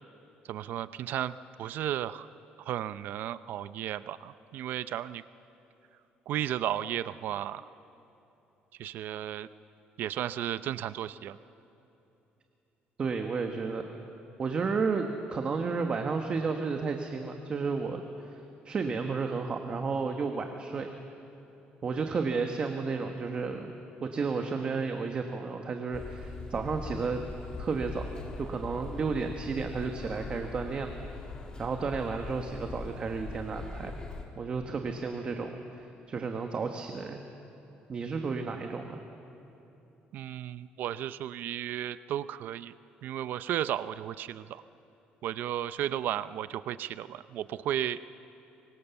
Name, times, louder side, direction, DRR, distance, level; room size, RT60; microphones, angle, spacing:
voice 1, 0.4-2.3 2.6-5.2 6.3-7.6 8.8-9.5 10.0-11.4 40.1-42.7 43.0-44.6 45.2-48.0, right 11 dB, 65° right, 15 dB, 0.5 m, -34 dB
voice 2, 13.0-13.9 14.4-18.4 18.6-20.9 21.8-27.2 27.6-28.1 28.4-30.9 31.6-34.0 34.4-37.2 37.9-39.0, right 4 dB, 35° right, 5 dB, 1.3 m, -32 dB
sound 1, 25.9-34.2, left 3 dB, 25° left, 2.6 m, -41 dB
24.5 x 24.0 x 7.0 m, 2.9 s
cardioid pair, 145°, 3 cm